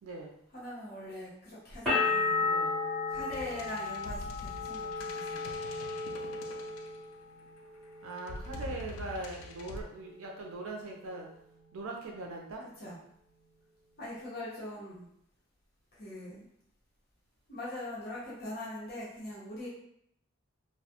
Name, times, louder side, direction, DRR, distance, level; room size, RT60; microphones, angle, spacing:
voice 1, 0.0-0.4 2.4-2.8 8.0-11.3 11.7-12.7, right 2 dB, 75° right, 0 dB, 0.4 m, -41 dB
voice 2, 0.5-2.4 3.1-5.5 12.8-13.0 14.0-15.1 16.0-16.5 17.5-19.7, left 1 dB, 45° left, -8 dB, 0.9 m, -42 dB
sound 1, 1.9-7.5 7.8-8.5, left 3 dB, ahead, 1.0 m, -33 dB
sound 2, 3.3-7.4 8.2-9.8, left 2 dB, 85° left, 0.3 m, -44 dB
2.3 x 2.1 x 2.8 m, 0.73 s
head